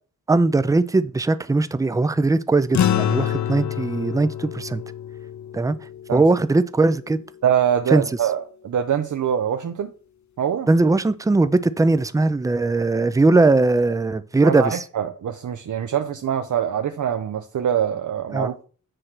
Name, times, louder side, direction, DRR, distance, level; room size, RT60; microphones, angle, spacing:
voice 1, 0.3-4.8 5.5-5.8 6.1-7.2 7.9-8.0 10.7-14.8 18.3-18.5, right 3 dB, 10° right, 0.3 m, -19 dB
sound 1, 2.7-7.4, left 10 dB, 65° left, 0.4 m, -27 dB
voice 2, 7.4-9.9 10.4-10.7 14.4-18.7, right 9 dB, 65° right, 0.6 m, -24 dB
7.7 x 3.2 x 5.9 m
wide cardioid pair, 105°, 32 cm